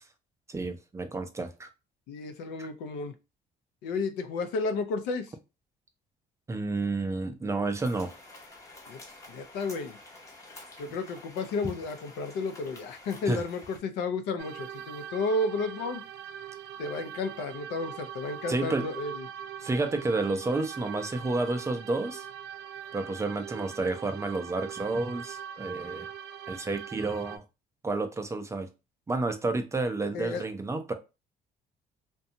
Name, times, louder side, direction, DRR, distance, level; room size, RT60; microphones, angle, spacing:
voice 1, 0.5-1.7 2.6-2.7 6.5-8.1 13.3-13.4 18.5-18.9 19.6-22.3 22.9-26.1 26.5-27.4 27.8-28.7 29.1-30.9, right 3 dB, 15° right, 0.4 m, -30 dB
voice 2, 2.1-3.1 3.8-5.3 8.9-9.0 9.3-10.0 10.8-16.0 16.8-19.3 30.1-30.4, left 3 dB, 90° left, 0.5 m, -32 dB
sound 1, 7.8-13.8, left 2 dB, 20° left, 0.7 m, -49 dB
sound 2, 14.4-27.4, right 9 dB, 85° right, 0.4 m, -42 dB
2.6 x 2.2 x 2.6 m
cardioid pair, 110°, 17 cm